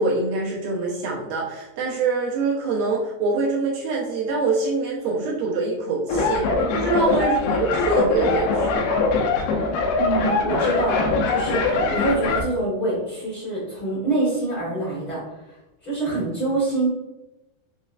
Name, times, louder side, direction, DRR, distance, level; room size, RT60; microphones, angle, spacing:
voice 1, 0.0-8.9, right 3 dB, 75° right, -4 dB, 2.3 m, -24 dB
sound 1, 6.1-12.4, left 3 dB, 85° left, 2.5 m, -22 dB
voice 2, 10.0-15.2 15.8-16.9, right 2 dB, 60° left, -10 dB, 0.9 m, -25 dB
6.3 x 2.1 x 2.5 m, 0.97 s
omnidirectional pair, 4.4 m